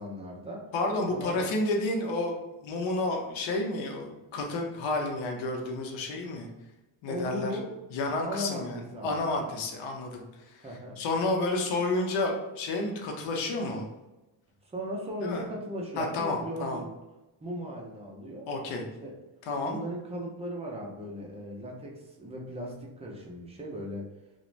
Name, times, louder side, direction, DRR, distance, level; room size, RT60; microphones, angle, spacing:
voice 1, 0.0-0.7 1.1-1.5 7.1-7.8 8.2-9.3 10.6-11.0 14.7-16.9 17.4-18.5 19.0-19.2 19.6-24.1, equal, 15° right, -2 dB, 0.3 m, -37 dB
voice 2, 0.7-2.3 2.6-6.5 7.0-7.5 7.9-10.7 11.0-13.9 15.2-15.4 16.0-16.8 18.5-18.8 19.5-19.8, left 2 dB, 70° left, 1 dB, 0.7 m, -30 dB
2.4 x 2.1 x 3.1 m, 1.0 s
cardioid pair, 115°, 49 cm